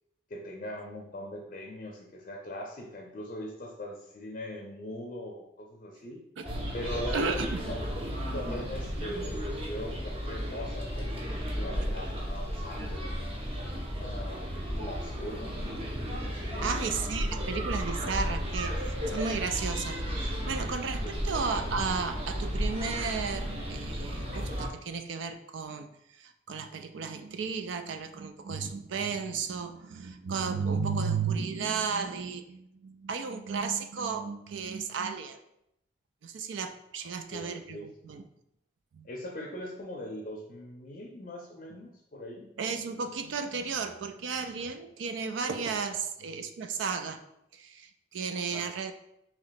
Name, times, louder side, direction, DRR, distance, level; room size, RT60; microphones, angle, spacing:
voice 1, 0.3-6.2 6.7-7.4 7.7-8.0 8.3-13.4 13.8-15.8 16.5-16.9 21.0-21.2 37.3-37.9 39.0-42.5 48.5-48.7, left 1 dB, 45° left, -1 dB, 0.5 m, -41 dB
sound 1, 6.4-24.7, equal, 30° right, 0.7 m, -34 dB
voice 2, 7.1-7.7 16.6-35.4 36.2-38.3 38.9-39.1 42.6-47.2 47.5-48.9, right 5 dB, 80° right, 8 dB, 0.4 m, -34 dB
3.0 x 2.9 x 4.0 m, 0.80 s
head